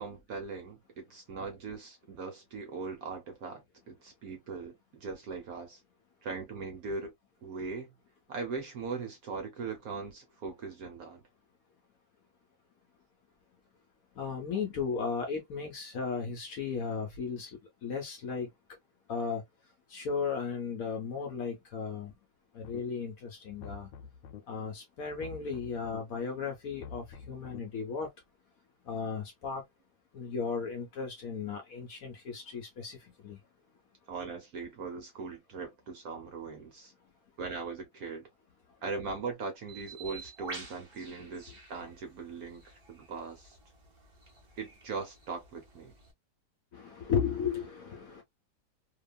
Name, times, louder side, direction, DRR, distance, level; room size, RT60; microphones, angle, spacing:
voice 1, 0.0-5.8 6.2-7.1 7.4-7.9 8.3-11.2 34.1-36.9 37.4-38.3 38.8-43.5 44.6-45.9, right 4 dB, 65° right, 1.0 m, -40 dB
voice 2, 14.1-18.5 19.1-19.4 19.9-22.1 22.5-23.9 24.5-28.1 28.8-29.6 30.1-33.4 41.5-41.6 46.7-48.2, left 6 dB, 65° left, 0.9 m, -35 dB
sound 1, 22.6-23.1 23.5-24.4 25.1-26.0 26.7-27.6, left 6 dB, 80° left, 1.3 m, -47 dB
Bird, 39.7-46.1, right 3 dB, 35° right, 0.5 m, -49 dB
2.8 x 2.3 x 2.2 m
omnidirectional pair, 2.0 m